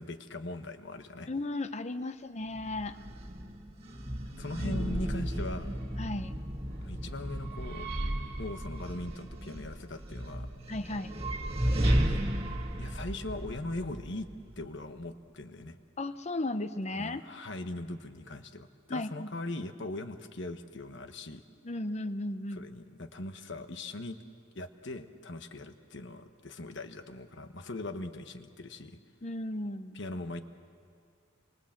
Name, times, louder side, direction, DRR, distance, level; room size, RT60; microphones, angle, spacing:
voice 1, 0.0-1.3 4.4-5.8 6.8-7.9 8.4-10.5 11.6-12.2 12.8-14.3 14.6-15.8 16.9-21.4 22.5-24.2 24.5-29.0 29.9-30.4, left 2 dB, 60° left, 8 dB, 1.2 m, -40 dB
voice 2, 1.3-3.0 6.0-6.4 10.7-11.1 16.0-17.2 18.9-19.3 21.6-22.7 29.2-30.0, left 2 dB, 35° left, 11 dB, 0.8 m, -35 dB
sound 1, 2.5-14.6, right 1 dB, 25° right, 1.8 m, -34 dB
28.5 x 24.5 x 7.5 m, 2.3 s
head